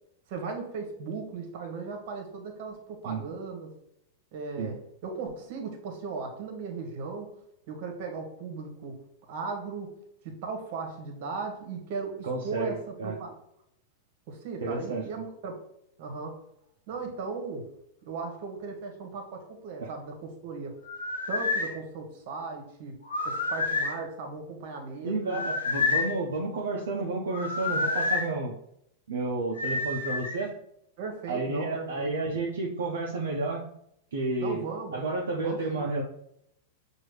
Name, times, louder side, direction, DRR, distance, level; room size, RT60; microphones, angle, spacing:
voice 1, 0.3-3.7 4.3-4.8 5.0-7.3 7.7-9.0 9.3-9.9 10.2-13.3 14.3-15.5 16.0-16.4 16.9-17.7 18.0-20.8 21.3-23.0 23.2-25.4 31.0-32.1 34.4-35.0 35.4-35.8, right 4 dB, 60° right, 3 dB, 1.2 m, -37 dB
voice 2, 12.2-13.2 14.6-15.0 19.8-19.9 25.0-28.5 29.1-30.5 31.3-33.7 34.1-34.6 34.9-36.0, right 3 dB, 75° right, -1 dB, 0.6 m, -31 dB
sound 1, 20.9-21.7 23.0-24.0 25.3-26.1 27.3-28.2 29.6-30.4, left 3 dB, 85° left, 0.8 m, -29 dB
6.1 x 2.6 x 3.2 m, 0.74 s
hypercardioid pair, 100°, 0 cm